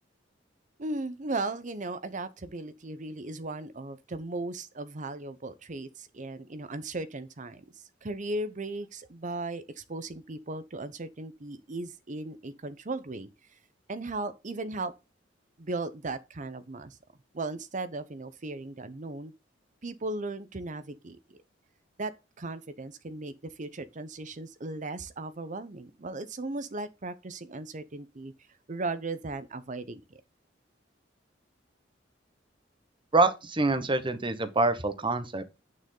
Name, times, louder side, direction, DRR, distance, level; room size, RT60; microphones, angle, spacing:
voice 1, 0.8-13.3 13.9-14.9 15.6-17.0 17.3-19.3 19.8-21.2 22.0-22.1 22.4-28.3 28.7-30.2, right 2 dB, 45° right, 0.8 m, -37 dB
voice 2, 33.1-35.4, right 2 dB, 25° right, 1.1 m, -25 dB
9.0 x 6.5 x 3.8 m
head